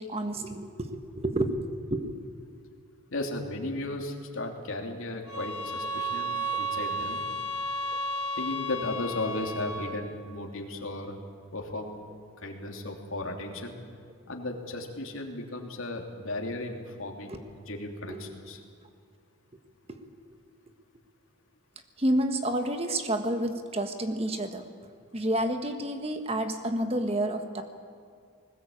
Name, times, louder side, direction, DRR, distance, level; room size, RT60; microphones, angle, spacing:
voice 1, 0.0-2.1 5.5-5.6 17.3-17.4 18.1-18.2 19.9-20.0 22.0-24.7 25.1-27.6, right 1 dB, 25° right, 7 dB, 1.5 m, -29 dB
voice 2, 3.1-7.2 8.3-11.2 11.5-12.0 12.4-13.8 14.3-18.6, left 2 dB, 70° left, 2 dB, 3.0 m, -35 dB
sound 1, 5.3-10.0, right 1 dB, 85° left, 3.6 m, -33 dB
20.5 x 19.5 x 8.7 m, 2.2 s
head